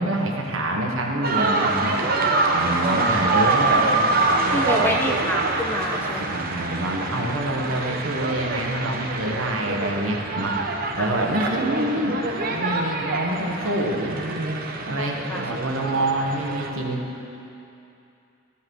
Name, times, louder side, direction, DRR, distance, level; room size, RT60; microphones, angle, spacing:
voice 1, 0.0-2.0 2.5-5.0 6.2-10.6 10.9-12.2 12.5-17.0, right 1 dB, 85° right, 1 dB, 1.3 m, -26 dB
sound 1, 1.2-16.7, right 3 dB, 45° right, 0.9 m, -25 dB
voice 2, 2.9-3.8 4.5-6.4 11.0-11.1 11.5-11.6 13.3-13.7 15.0-15.4, left 1 dB, 10° left, 2 dB, 0.7 m, -29 dB
sound 2, 4.9-6.2 9.0-9.1, right 2 dB, 10° right, 1.2 m, -40 dB
14.5 x 5.8 x 6.3 m, 2.7 s
head